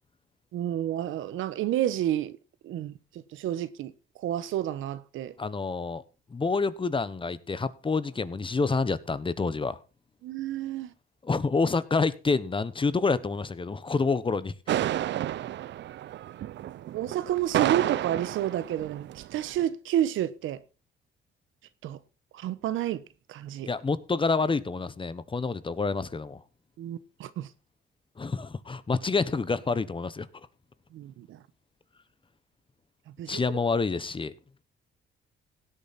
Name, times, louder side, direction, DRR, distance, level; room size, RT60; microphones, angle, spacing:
voice 1, 0.5-2.3 2.6-2.9 3.3-3.9 4.2-5.3 10.2-10.9 15.1-15.2 16.9-20.6 21.8-22.0 22.3-23.0 23.3-23.7 26.8-27.5 30.9-31.4 33.2-33.4, right 12 dB, 85° right, 1.1 m, -30 dB
voice 2, 5.4-6.0 6.3-9.8 11.2-14.5 23.6-26.4 28.2-30.3 33.3-34.3, left 4 dB, 25° left, 1.1 m, -28 dB
sound 1, 14.7-19.6, right 12 dB, 65° right, 0.6 m, -31 dB
16.5 x 8.8 x 4.2 m
cardioid pair, 90°, 20 cm